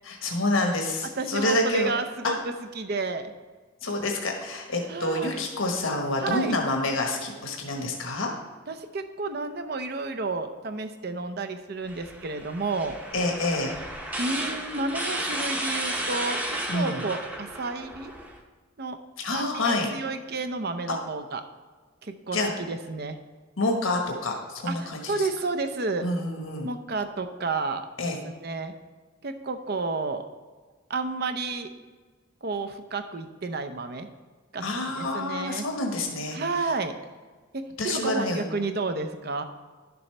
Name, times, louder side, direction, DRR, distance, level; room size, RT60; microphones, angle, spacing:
voice 1, 0.0-1.9 3.8-8.3 13.1-13.7 16.7-17.0 19.2-19.9 22.3-22.5 23.6-25.2 26.0-26.7 28.0-28.2 34.6-36.4 37.8-38.4, left 2 dB, 85° left, 1 dB, 1.3 m, -27 dB
voice 2, 1.2-3.3 4.9-5.4 6.2-6.6 8.7-13.0 14.2-18.1 18.8-19.0 19.3-21.4 22.0-23.2 24.7-26.1 26.6-27.9 28.2-28.7 29.2-30.3 30.9-31.7 32.4-34.1 34.5-35.6 36.3-37.0 37.5-39.4, right 3 dB, 50° right, 8 dB, 0.6 m, -31 dB
sound 1, 11.9-18.4, right 1 dB, 10° right, 0.8 m, -33 dB
11.5 x 6.9 x 3.3 m, 1.4 s
head